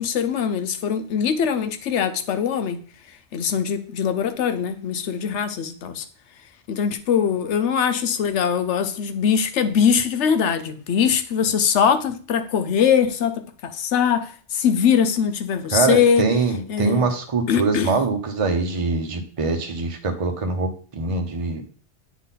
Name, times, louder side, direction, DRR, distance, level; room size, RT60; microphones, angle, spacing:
voice 1, 0.0-2.8 3.3-6.0 6.7-16.2 16.7-17.1 17.5-17.9, left 7 dB, 80° left, 1.0 m, -22 dB
voice 2, 15.7-21.6, right 4 dB, 30° right, 0.8 m, -23 dB
8.2 x 3.9 x 4.0 m
omnidirectional pair, 1.2 m